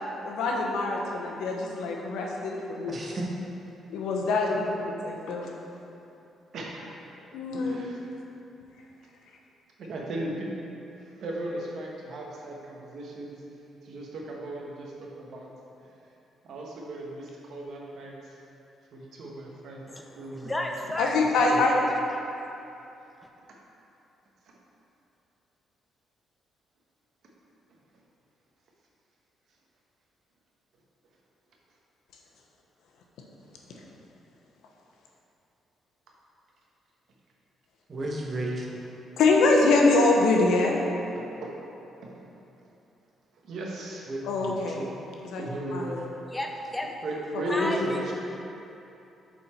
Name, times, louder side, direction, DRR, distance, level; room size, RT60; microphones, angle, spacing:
voice 1, 0.2-2.9 3.9-5.5 7.3-7.8 21.0-21.7 39.2-40.8 44.2-44.8 45.3-45.4 45.7-45.8 47.5-47.7, left 3 dB, 85° left, 0 dB, 0.8 m, -24 dB
voice 2, 2.9-3.3 37.9-38.8 44.1-44.9, right 1 dB, 40° right, -2 dB, 1.1 m, -34 dB
voice 3, 6.5-7.0 7.6-8.0 9.8-10.5 11.2-13.4 13.8-15.5 16.4-18.4 18.9-19.9 20.2-20.5 21.5-21.6 24.5-24.6 33.7-33.8 41.1-41.5 42.0-42.2 43.4-44.1 45.3-46.0 47.0-48.1, right 1 dB, 70° right, -2 dB, 1.1 m, -36 dB
voice 4, 19.9-21.9 22.1-22.2 46.3-47.0 47.5-48.1, left 1 dB, 15° left, 2 dB, 0.6 m, -33 dB
7.2 x 4.2 x 4.4 m, 2.9 s
cardioid pair, 90°, 0 cm